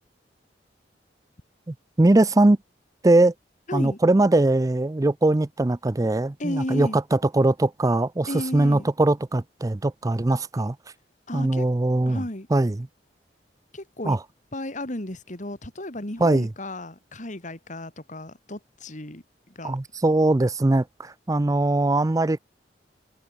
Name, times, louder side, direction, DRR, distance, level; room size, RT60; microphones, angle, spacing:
voice 1, 1.7-2.6 3.0-3.3 3.7-10.8 11.3-12.2 12.5-12.9 14.0-14.2 16.2-16.5 19.6-22.4, right 2 dB, 20° right, 0.5 m, -21 dB
voice 2, 6.4-7.0 8.3-8.9 11.3-11.6 12.1-12.5 13.7-14.2 14.5-19.8, left 1 dB, 45° left, 3.0 m, -34 dB
head